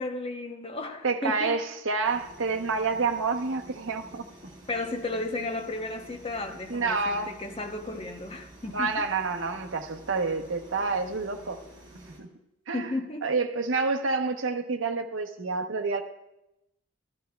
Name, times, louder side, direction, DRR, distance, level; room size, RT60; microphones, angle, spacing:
voice 1, 0.0-1.6 4.7-9.0 12.7-13.3, left 2 dB, 30° left, 5 dB, 0.7 m, -34 dB
voice 2, 1.0-4.3 6.7-7.3 8.7-11.6 12.2-12.3 12.7-12.9 13.2-16.0, right 4 dB, 75° right, 4 dB, 0.8 m, -28 dB
sound 1, 2.0-12.2, right 1 dB, 25° right, 3.1 m, -50 dB
13.5 x 11.5 x 2.3 m, 0.88 s
head